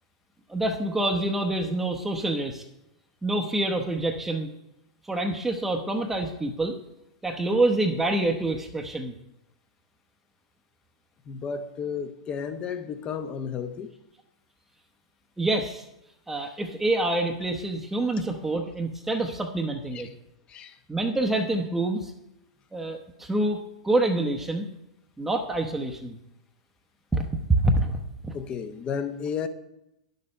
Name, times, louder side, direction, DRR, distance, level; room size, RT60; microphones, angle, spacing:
voice 1, 0.5-2.6 3.2-4.5 5.1-6.7 7.2-9.1 15.4-15.8 16.3-20.1 20.9-22.1 22.7-24.7 25.2-26.2 27.1-28.0 28.2-28.4, right 2 dB, 10° right, 0.8 m, -26 dB
voice 2, 11.3-13.9 19.9-20.0 20.5-20.8 28.3-29.5, left 6 dB, 30° left, 0.8 m, -33 dB
10.5 x 6.7 x 5.5 m
figure-of-eight pair, 100°, 3 cm